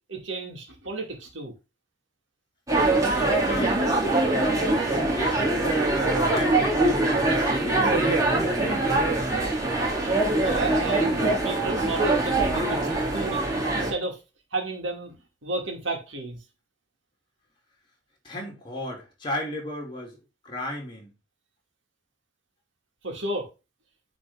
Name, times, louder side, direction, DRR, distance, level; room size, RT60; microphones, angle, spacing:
voice 1, 0.1-1.5 10.4-13.4 13.7-14.2 14.5-15.2 15.4-16.4 23.0-23.5, right 2 dB, 75° right, 2.4 m, -32 dB
sound 1, 2.7-13.9, right 2 dB, 20° right, 2.3 m, -23 dB
voice 2, 3.0-4.0 4.3-5.6 6.0-9.0 18.2-21.1, equal, 25° left, 2.8 m, -35 dB
9.4 x 4.2 x 3.7 m
head